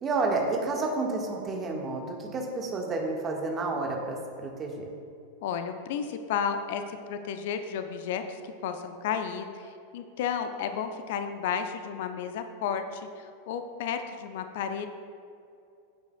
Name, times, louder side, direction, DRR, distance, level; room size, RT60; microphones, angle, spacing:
voice 1, 0.0-4.9, right 3 dB, 25° right, 0 dB, 1.5 m, -30 dB
voice 2, 5.4-6.8 7.1-14.9, left 7 dB, 50° left, 8 dB, 0.6 m, -32 dB
15.0 x 8.1 x 2.3 m, 2.5 s
figure-of-eight pair, 90°, 0 cm